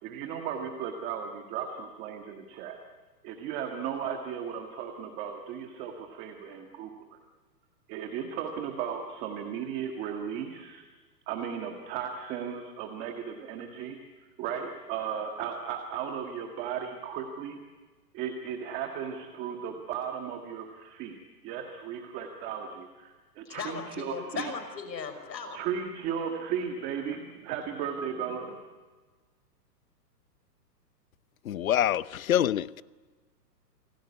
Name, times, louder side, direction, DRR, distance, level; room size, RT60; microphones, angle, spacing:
voice 1, 0.0-2.8 3.2-7.2 7.9-10.8 11.3-14.0 14.4-17.6 18.1-21.2 21.4-24.5 25.5-28.6, right 8 dB, 15° right, 1.6 m, -35 dB
voice 2, 23.5-25.6, left 5 dB, 90° left, 6.0 m, -37 dB
voice 3, 31.4-32.8, left 11 dB, 55° left, 0.8 m, -26 dB
28.5 x 20.5 x 9.7 m
hypercardioid pair, 165°, 50 cm